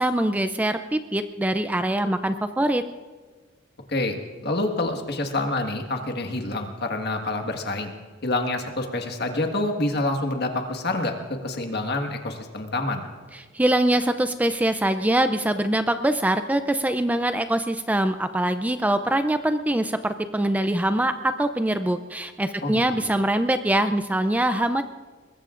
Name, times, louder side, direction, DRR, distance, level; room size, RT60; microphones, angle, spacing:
voice 1, 0.0-2.8 13.5-24.8, right 1 dB, 10° right, 9 dB, 0.4 m, -23 dB
voice 2, 4.4-7.9 8.2-13.0 22.6-23.1, left 2 dB, 55° left, 4 dB, 1.6 m, -27 dB
22.5 x 21.0 x 2.5 m, 1.4 s
head